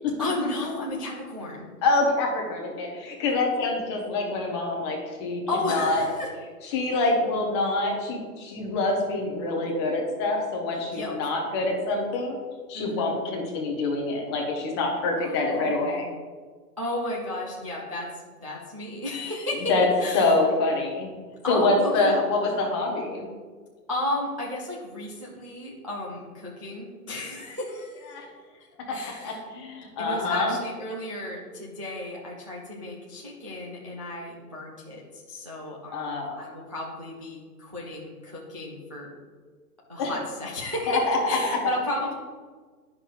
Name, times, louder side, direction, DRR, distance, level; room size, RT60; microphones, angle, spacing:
voice 1, 0.2-1.7 5.5-6.3 7.6-7.7 10.9-11.1 12.7-13.1 15.2-16.1 16.8-18.1 18.4-19.7 20.0-20.4 21.4-22.1 23.9-28.2 28.9-29.4 30.0-35.0 35.3-39.1 39.9-42.1, left 1 dB, 25° right, -4 dB, 0.3 m, -33 dB
voice 2, 1.8-5.4 5.7-6.0 6.6-12.4 12.7-16.1 19.7-19.9 20.1-21.1 21.5-23.3 28.1-28.2 28.9-30.6 35.9-36.3 40.0-40.1 40.9-41.2, left 2 dB, 20° left, 0 dB, 0.7 m, -26 dB
9.9 x 5.7 x 2.4 m, 1.5 s
hypercardioid pair, 150°, 47 cm